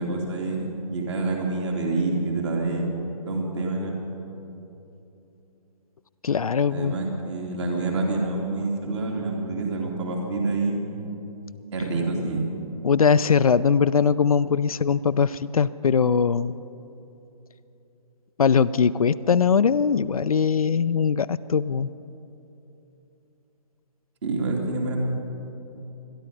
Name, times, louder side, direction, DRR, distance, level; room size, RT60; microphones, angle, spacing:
voice 1, 0.0-2.9 3.3-3.9 6.7-10.8 11.7-12.5 24.2-25.0, right 3 dB, 45° right, 0 dB, 2.8 m, -27 dB
voice 2, 6.2-6.9 12.8-16.6 18.4-21.9, left 6 dB, 65° left, 14 dB, 0.4 m, -21 dB
22.0 x 12.0 x 5.4 m, 2.9 s
figure-of-eight pair, 135°, 19 cm